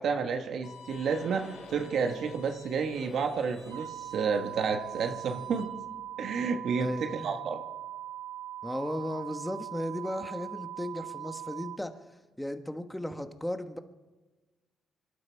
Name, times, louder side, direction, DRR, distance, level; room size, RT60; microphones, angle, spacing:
voice 1, 0.0-5.7 6.2-7.6, right 5 dB, 65° right, 4 dB, 1.4 m, -30 dB
Bowed string instrument, 0.6-5.6, left 4 dB, 85° left, 3.9 m, -54 dB
sound 1, 0.9-2.1 2.5-6.1, left 4 dB, 65° left, 3.6 m, -52 dB
sound 2, 3.7-11.8, right 12 dB, 90° right, 0.8 m, -41 dB
voice 2, 6.8-7.4 8.6-11.9 12.4-13.8, left 1 dB, 5° left, 7 dB, 1.4 m, -35 dB
25.0 x 12.0 x 4.6 m, 1.2 s
cardioid pair, 90°, 0 cm